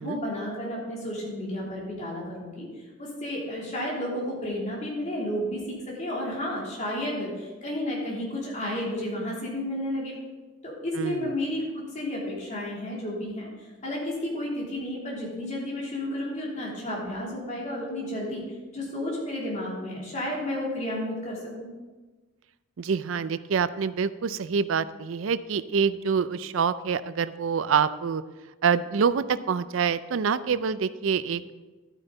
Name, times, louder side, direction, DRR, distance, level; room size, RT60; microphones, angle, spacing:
voice 1, 0.0-2.7 3.0-10.1 10.6-18.4 18.7-21.7, left 1 dB, 35° left, -5 dB, 3.2 m, -32 dB
voice 2, 11.0-11.3 22.8-28.2 28.6-31.5, right 6 dB, 80° right, 15 dB, 0.4 m, -26 dB
11.5 x 9.0 x 4.0 m, 1.3 s
head